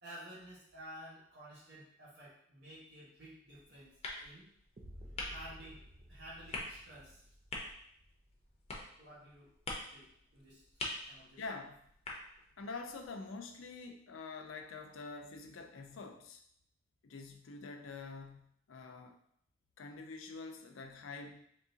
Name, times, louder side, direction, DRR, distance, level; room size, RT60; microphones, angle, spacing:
voice 1, 0.0-4.5 5.2-5.8 6.1-7.2 9.0-9.5 9.9-10.6 11.0-11.4, right 1 dB, 60° right, -7 dB, 1.3 m, -52 dB
sound 1, 3.5-13.1, left 2 dB, 30° left, 0.6 m, -47 dB
sound 2, 4.8-8.8, equal, 35° right, 0.5 m, -54 dB
voice 2, 11.4-11.7 12.6-16.4 17.0-19.2 19.8-21.4, left 4 dB, 85° left, 5 dB, 0.5 m, -46 dB
3.7 x 2.9 x 2.7 m, 0.67 s
head